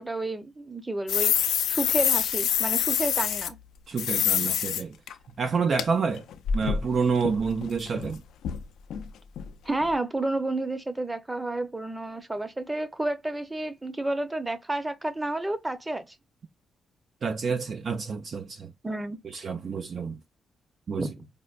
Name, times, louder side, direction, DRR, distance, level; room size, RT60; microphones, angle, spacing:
voice 1, 0.0-3.6 9.6-16.1 18.8-19.2 21.0-21.1, right 2 dB, 15° right, 0.8 m, -30 dB
sound 1, 1.1-3.5 4.0-4.8 5.1-5.2 5.8-5.9 6.1-8.1 8.4-8.6 8.9-9.0 9.4-9.5 9.8-9.9, left 9 dB, 85° left, 0.4 m, -26 dB
voice 2, 3.9-5.0 5.4-6.2 6.5-8.2 17.2-18.7 19.3-20.2 20.9-21.1, right 5 dB, 50° right, 0.4 m, -28 dB
5.0 x 2.1 x 2.5 m
cardioid pair, 95°, 0 cm